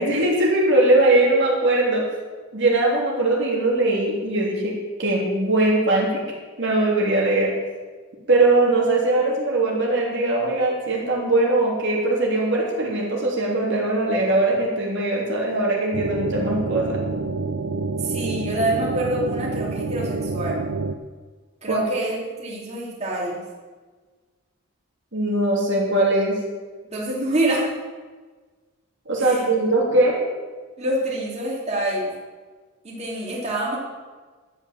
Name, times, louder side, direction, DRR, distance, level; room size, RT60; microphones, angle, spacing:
voice 1, 0.0-2.0 2.5-4.7 5.0-6.2 6.6-7.5 8.3-17.0 21.7-21.8 25.1-26.4 29.1-30.2, right 2 dB, 60° right, -3 dB, 3.2 m, -20 dB
sound 1, 15.9-20.9, right 3 dB, 75° right, 0.7 m, -27 dB
voice 2, 18.0-20.6 21.6-23.4 26.8-27.6 29.2-29.4 30.8-32.1 32.8-33.8, right 1 dB, 30° right, -5 dB, 3.0 m, -26 dB
12.5 x 8.9 x 7.4 m, 1.4 s
head